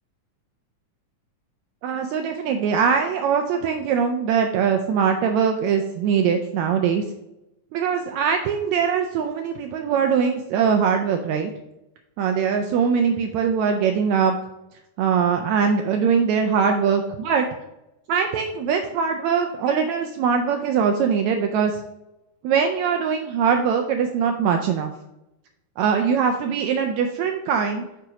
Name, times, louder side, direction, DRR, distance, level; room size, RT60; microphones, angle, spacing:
voice 1, 1.8-7.0 7.7-11.5 12.2-14.3 15.0-17.5 18.1-21.8 22.4-24.9 25.8-27.9, right 6 dB, 85° right, 5 dB, 1.6 m, -22 dB
5.7 x 4.8 x 4.9 m, 0.91 s
omnidirectional pair, 3.7 m